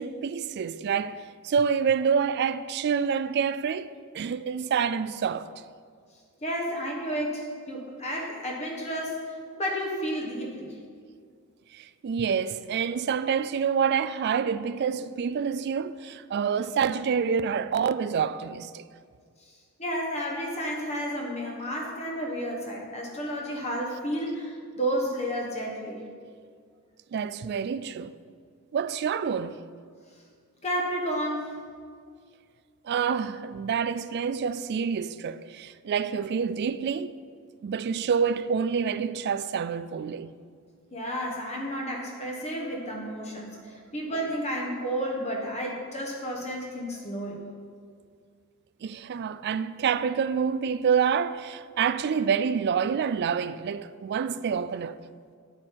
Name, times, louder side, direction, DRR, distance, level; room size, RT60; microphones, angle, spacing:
voice 1, 0.0-5.5 11.7-18.8 27.1-28.2 28.7-29.6 32.8-37.1 37.6-40.3 48.8-55.0, right 6 dB, 50° right, 0.3 m, -27 dB
voice 2, 6.4-10.8 19.8-26.0 30.6-31.5 40.9-47.4, equal, 30° left, 1.1 m, -31 dB
9.6 x 7.3 x 4.6 m
head